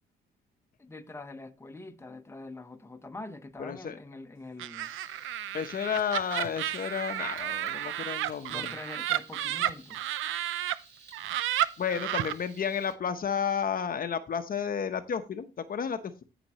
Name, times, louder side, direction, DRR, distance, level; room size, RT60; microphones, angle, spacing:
voice 1, 0.8-4.9 8.5-10.0, left 2 dB, 15° left, 1.1 m, -44 dB
voice 2, 3.6-4.0 5.5-8.7 11.8-16.2, left 7 dB, 45° left, 1.0 m, -32 dB
Laughter, 4.6-10.7 11.1-12.3, right 12 dB, 85° right, 0.7 m, -32 dB
Frying (food), 4.8-12.9, right 4 dB, 55° right, 6.1 m, -55 dB
14.5 x 6.0 x 3.1 m
cardioid pair, 90°, 20 cm